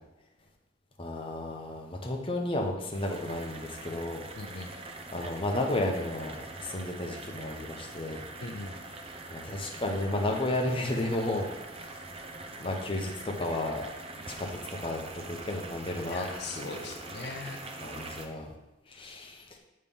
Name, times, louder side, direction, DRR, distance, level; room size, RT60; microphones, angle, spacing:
voice 1, 1.0-4.2 5.1-8.2 9.3-11.5 11.7-12.0 12.6-13.9 14.4-14.5 14.8-15.0 15.3-16.3 16.5-16.8 17.8-18.5 18.9-19.4, left 1 dB, 30° left, 1 dB, 0.9 m, -32 dB
sound 1, 2.9-18.3, right 2 dB, 30° right, 0.6 m, -43 dB
voice 2, 4.3-4.7 8.4-8.8 16.1-17.6, left 3 dB, 60° left, 3 dB, 0.6 m, -40 dB
7.1 x 3.2 x 5.4 m, 1.0 s
head